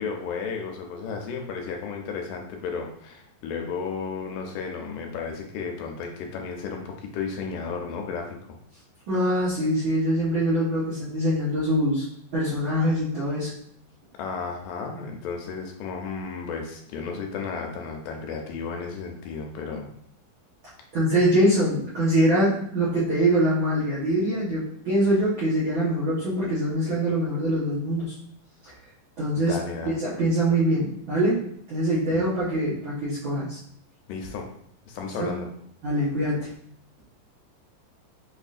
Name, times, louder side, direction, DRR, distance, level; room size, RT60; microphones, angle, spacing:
voice 1, 0.0-8.6 14.2-19.9 29.4-30.0 32.1-32.3 34.1-34.5 34.9-35.5, left 5 dB, 80° left, 2 dB, 2.1 m, -33 dB
voice 2, 9.1-12.0 12.3-13.5 20.9-28.1 29.2-29.6 29.9-31.4 31.7-33.6 35.2-35.3 35.8-36.5, right 1 dB, 80° right, -9 dB, 1.1 m, -23 dB
6.0 x 2.6 x 2.4 m, 0.67 s
omnidirectional pair, 3.9 m